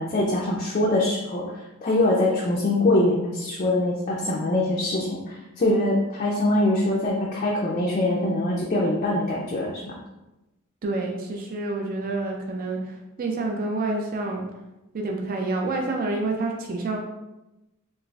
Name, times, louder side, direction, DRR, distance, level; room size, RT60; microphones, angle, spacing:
voice 1, 0.0-9.9, left 1 dB, 35° left, -4 dB, 0.4 m, -23 dB
voice 2, 10.8-14.4 14.9-17.0, right 2 dB, 40° right, 1 dB, 0.4 m, -28 dB
3.9 x 2.4 x 2.3 m, 0.99 s
head